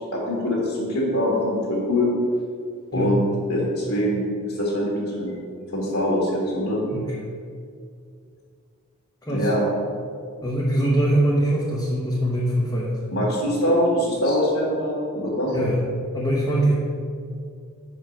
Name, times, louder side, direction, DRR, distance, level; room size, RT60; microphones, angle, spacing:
voice 1, 0.0-2.1 2.9-3.2 3.5-5.3 5.7-6.8 9.3-9.6 13.1-15.6, left 1 dB, 65° left, -5 dB, 1.5 m, -23 dB
voice 2, 10.4-13.0 15.5-15.8 16.1-16.7, right 1 dB, 15° left, -5 dB, 0.8 m, -22 dB
5.8 x 4.5 x 6.4 m, 2.3 s
head